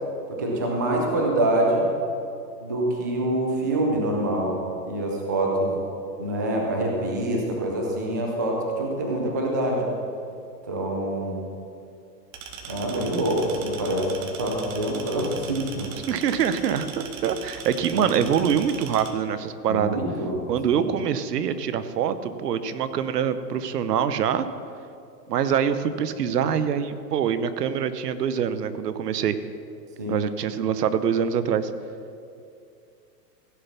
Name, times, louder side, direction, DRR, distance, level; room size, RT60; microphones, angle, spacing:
voice 1, 0.4-1.9 2.6-4.6 4.8-5.8 6.2-9.8 10.7-11.4 12.7-14.1 14.4-15.9 17.9-18.1 19.7-20.4 20.7-20.8 30.0-30.2, right 1 dB, 15° right, 0 dB, 0.3 m, -25 dB
sound 1, 12.3-19.1, right 6 dB, 50° right, 1.5 m, -40 dB
voice 2, 16.1-20.0 20.5-24.4 25.3-29.3 30.1-31.7, right 8 dB, 75° right, 12 dB, 1.0 m, -24 dB
16.0 x 6.9 x 5.8 m, 2.5 s
hypercardioid pair, 145°, 48 cm